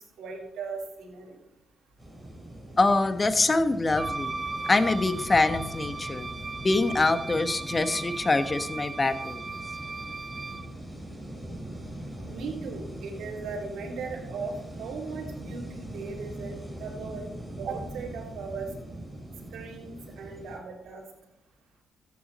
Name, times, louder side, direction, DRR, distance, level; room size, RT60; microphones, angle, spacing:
voice 1, 0.0-1.4 12.2-17.3 17.6-18.7 19.5-21.0, right 4 dB, 70° right, -3 dB, 3.4 m, -38 dB
sound 1, 2.0-20.6, right 1 dB, 5° left, 5.6 m, -41 dB
voice 2, 2.8-4.3 4.7-6.3 6.6-9.5, left 2 dB, 30° left, 9 dB, 1.3 m, -24 dB
Wind instrument woodwind instrument, 3.9-10.7, right 3 dB, 35° right, 0.9 m, -37 dB
14.5 x 9.5 x 4.3 m, 0.80 s
supercardioid pair, 50°, 0 cm